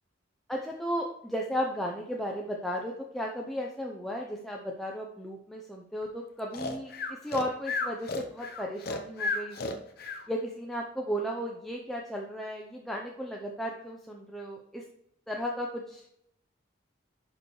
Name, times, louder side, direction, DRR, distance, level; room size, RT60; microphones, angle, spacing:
voice 1, 0.5-6.9 7.2-9.8 10.3-14.8 15.3-16.0, equal, ahead, -1 dB, 0.7 m, -35 dB
Breathing, 6.5-10.2, left 3 dB, 50° left, 1.0 m, -33 dB
11.0 x 5.3 x 3.2 m, 0.75 s
head